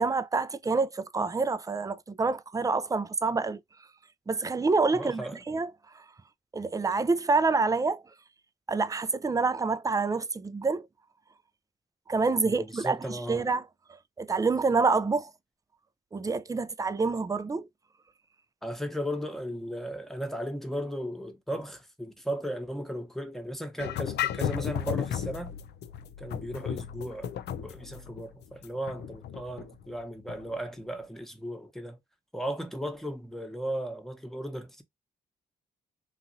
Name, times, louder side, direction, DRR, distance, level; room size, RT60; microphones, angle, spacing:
voice 1, 0.0-3.6 4.3-5.7 6.5-8.0 8.7-10.9 12.1-13.6 14.2-15.3 16.1-17.7, right 4 dB, 20° right, 0.4 m, -27 dB
voice 2, 4.9-5.4 12.5-13.5 18.6-25.5 26.2-27.3 27.5-32.0 32.3-34.8, equal, ahead, 1.0 m, -36 dB
sound 1, 23.8-30.5, left 10 dB, 75° left, 0.4 m, -35 dB
3.0 x 2.5 x 2.5 m
cardioid pair, 65°, 17 cm